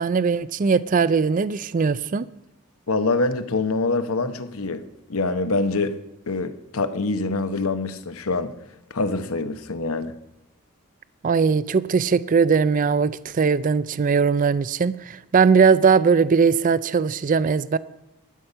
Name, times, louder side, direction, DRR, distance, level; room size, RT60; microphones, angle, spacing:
voice 1, 0.0-2.3 11.2-17.8, right 5 dB, 35° right, 0.3 m, -20 dB
voice 2, 2.9-4.8 5.1-6.0 6.3-8.5 8.9-10.1, left 3 dB, 70° left, 1.0 m, -25 dB
12.0 x 10.5 x 5.5 m
head